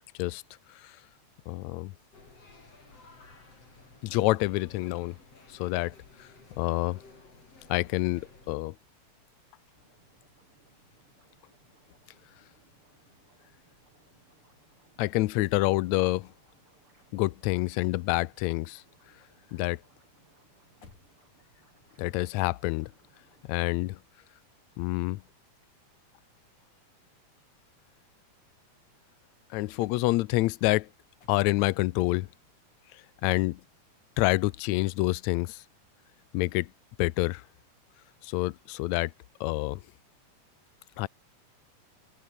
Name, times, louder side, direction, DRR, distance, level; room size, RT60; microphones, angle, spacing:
voice 1, 1.5-1.9 4.0-5.2 5.5-6.3 6.6-7.0 7.7-8.7 15.0-16.3 17.1-18.8 19.5-19.8 22.0-22.9 23.5-24.0 24.8-25.2 29.5-30.9 31.3-32.3 32.9-33.6 34.2-35.6 36.3-36.7 37.0-37.4 38.2-39.1 39.4-39.8 41.0-41.1, left 19 dB, 80° left, 1.7 m, -27 dB
sound 1, 2.1-8.6, left 3 dB, 45° left, 7.3 m, -54 dB
sound 2, 9.7-23.6, right 2 dB, 40° right, 8.9 m, -66 dB
sound 3, 16.4-19.3 19.6-23.2 24.9-26.7 27.0-28.8 29.2-31.9 34.5-34.8, left 5 dB, 65° left, 6.3 m, -64 dB
omnidirectional pair, 3.7 m